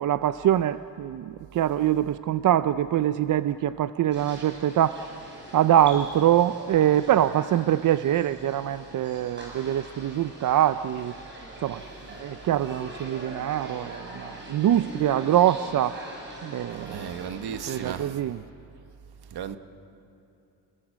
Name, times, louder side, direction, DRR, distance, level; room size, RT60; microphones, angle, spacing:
voice 1, 0.0-5.0 5.5-11.1 11.6-11.8 12.2-16.0 16.4-17.1 17.7-18.4, right 11 dB, 50° right, 13 dB, 0.5 m, -24 dB
sound 1, 4.1-17.9, equal, 25° right, 7.5 m, -43 dB
voice 2, 16.9-18.1 19.3-19.6, right 9 dB, 65° right, 9 dB, 1.3 m, -35 dB
28.5 x 19.5 x 7.4 m, 2.8 s
cardioid pair, 120°, 41 cm